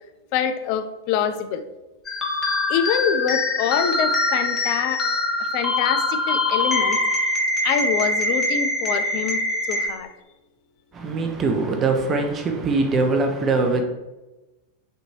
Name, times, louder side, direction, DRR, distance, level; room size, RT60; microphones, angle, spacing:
voice 1, 0.3-1.6 2.7-5.1 5.5-7.0 7.6-9.4 9.7-10.1, left 8 dB, 45° left, 0.3 m, -25 dB
sound 1, 2.1-9.9, left 2 dB, 25° left, 0.8 m, -23 dB
voice 2, 10.9-13.8, right 3 dB, 25° right, 0.6 m, -22 dB
4.4 x 2.6 x 2.7 m
figure-of-eight pair, 90°, 0 cm